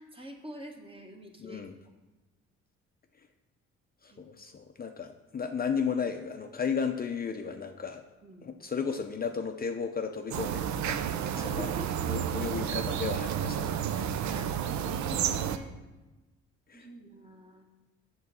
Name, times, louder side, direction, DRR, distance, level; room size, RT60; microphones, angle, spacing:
voice 1, 0.0-1.6 4.1-4.2 8.2-8.5 11.4-12.0 13.9-15.7 16.7-17.7, right 1 dB, 20° right, 3 dB, 1.2 m, -45 dB
voice 2, 1.4-1.8 3.2-3.3 4.0-8.0 8.4-11.7 12.0-14.2 14.9-15.0 16.7-16.9, left 6 dB, 30° left, 5 dB, 0.5 m, -34 dB
sound 1, 10.3-15.6, right 9 dB, 70° right, 0.6 m, -31 dB
7.8 x 3.9 x 6.8 m, 1.1 s
cardioid pair, 90°, 30 cm